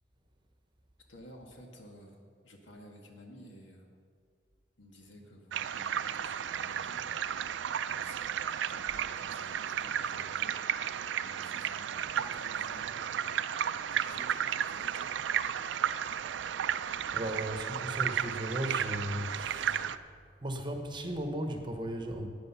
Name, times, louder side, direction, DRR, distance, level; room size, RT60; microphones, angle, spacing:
voice 1, 1.1-2.2 2.4-3.9 4.8-7.0 7.8-10.5 11.2-12.9 13.9-15.2, equal, 85° left, 2 dB, 1.7 m, -53 dB
sound 1, 5.5-20.0, right 9 dB, 75° right, 0.4 m, -33 dB
voice 2, 16.4-19.9 20.4-22.3, right 1 dB, 25° right, 5 dB, 1.0 m, -37 dB
11.5 x 8.8 x 5.6 m, 2.1 s
head